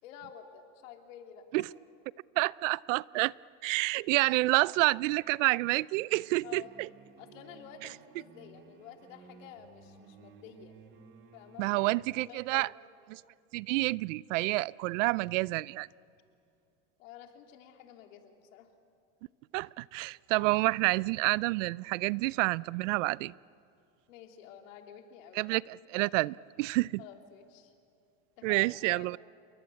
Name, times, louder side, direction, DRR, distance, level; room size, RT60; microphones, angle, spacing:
voice 1, 0.0-1.7 6.4-6.7 7.2-10.8 11.3-11.8 12.2-12.7 17.0-18.7 24.1-25.4 27.0-27.7 28.4-29.2, left 9 dB, 80° left, 3.2 m, -50 dB
voice 2, 2.4-3.3 3.6-6.9 11.6-12.7 13.1-13.2 13.5-15.9 19.5-23.3 25.3-27.0 28.4-29.2, right 22 dB, 70° right, 0.5 m, -29 dB
sound 1, 6.1-12.0, right 4 dB, 30° right, 2.1 m, -56 dB
28.5 x 22.5 x 8.4 m
supercardioid pair, 155°, 39 cm